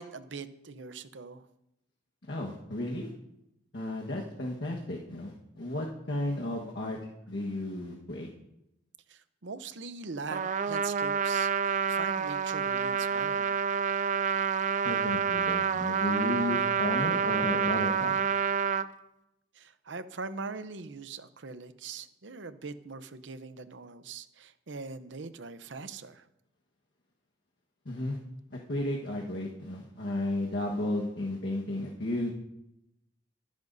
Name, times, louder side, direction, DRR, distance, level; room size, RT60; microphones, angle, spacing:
voice 1, 0.0-1.5 9.1-13.6 19.5-26.3, right 4 dB, 75° right, 11 dB, 0.8 m, -42 dB
voice 2, 2.3-3.1 3.7-7.0 7.3-8.3 14.8-18.2 27.8-28.2 28.5-32.3, left 1 dB, 65° left, -2 dB, 1.4 m, -33 dB
Trumpet, 10.3-18.9, right 6 dB, 40° right, 0.4 m, -28 dB
24.0 x 10.5 x 2.7 m, 0.86 s
head